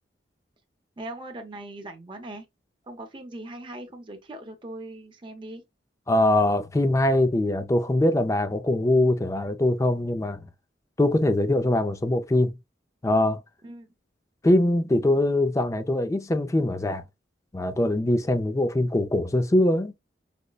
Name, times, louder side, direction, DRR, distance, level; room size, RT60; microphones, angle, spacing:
voice 1, 1.0-2.4 2.9-5.6 13.6-13.9, right 1 dB, 30° right, 0.7 m, -40 dB
voice 2, 6.1-10.4 11.0-12.6 13.0-13.4 14.4-17.0 17.5-19.9, left 1 dB, 15° left, 0.4 m, -22 dB
5.0 x 2.1 x 2.3 m
head